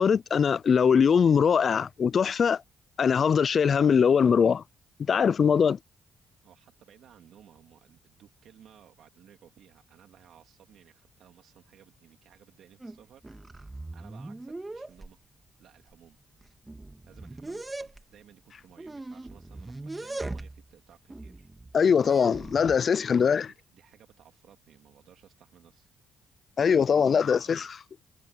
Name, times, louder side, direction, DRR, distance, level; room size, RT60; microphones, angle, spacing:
voice 1, 0.0-2.6 3.0-4.6 5.1-5.8 21.7-23.5 26.6-27.7, left 6 dB, 50° left, 0.3 m, -22 dB
voice 2, 6.4-13.2 13.9-15.2 15.6-16.2 17.0-21.5 23.0-25.9 27.0-27.7, right 10 dB, 75° right, 2.3 m, -57 dB
sound 1, 12.8-13.0 13.2-15.1 15.9-16.0 16.4-18.0 18.8-20.7 21.1-22.8, right 2 dB, 15° right, 1.8 m, -40 dB
cardioid pair, 90°, 0 cm